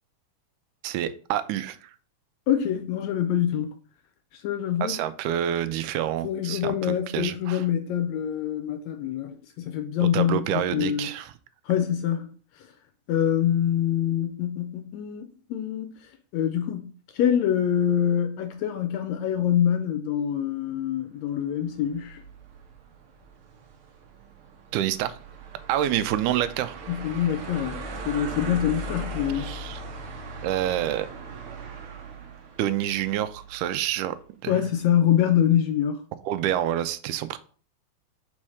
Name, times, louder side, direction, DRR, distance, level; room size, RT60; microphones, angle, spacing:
voice 1, 0.8-1.9 4.8-7.6 10.0-11.3 24.7-25.2 25.7-26.8 29.3-29.8 30.4-31.1 32.6-34.2 34.4-34.6 36.3-37.4, right 11 dB, 85° right, 2.1 m, -27 dB
voice 2, 2.5-3.7 4.3-5.0 6.2-11.1 11.6-12.3 12.6-12.7 13.1-22.2 26.9-29.5 34.5-36.0, left 10 dB, 75° left, 1.7 m, -25 dB
sound 1, 21.7-33.9, right 2 dB, 65° right, 1.4 m, -39 dB
5.3 x 4.3 x 4.8 m
omnidirectional pair, 3.6 m